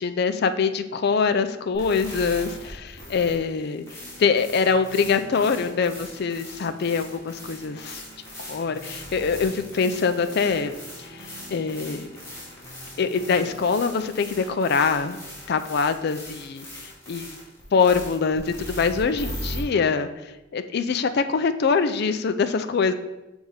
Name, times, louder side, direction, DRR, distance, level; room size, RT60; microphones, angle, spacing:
voice 1, 0.0-3.8 4.2-8.0 8.4-10.7 11.0-12.1 13.0-15.2 15.5-17.4 17.7-22.9, left 5 dB, 55° left, 9 dB, 0.4 m, -24 dB
sound 1, 1.7-19.6, left 1 dB, 15° left, 2.5 m, -40 dB
sound 2, 4.0-13.9, right 1 dB, 60° right, 1.4 m, -48 dB
6.4 x 3.5 x 5.5 m, 0.96 s
head